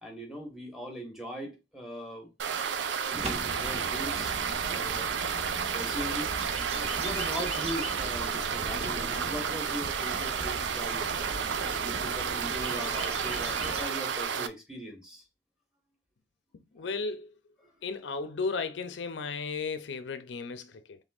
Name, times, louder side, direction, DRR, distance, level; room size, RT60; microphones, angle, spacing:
voice 1, 0.0-4.4 4.7-5.1 5.7-6.3 7.0-11.1 11.6-15.2, equal, 5° right, 1.2 m, -40 dB
sound 1, 2.4-14.5, right 7 dB, 85° right, 0.5 m, -31 dB
sound 2, 3.1-13.8, right 1 dB, 35° right, 0.9 m, -40 dB
voice 2, 16.5-17.4 17.8-21.0, left 4 dB, 80° left, 0.5 m, -35 dB
5.3 x 3.3 x 2.4 m
head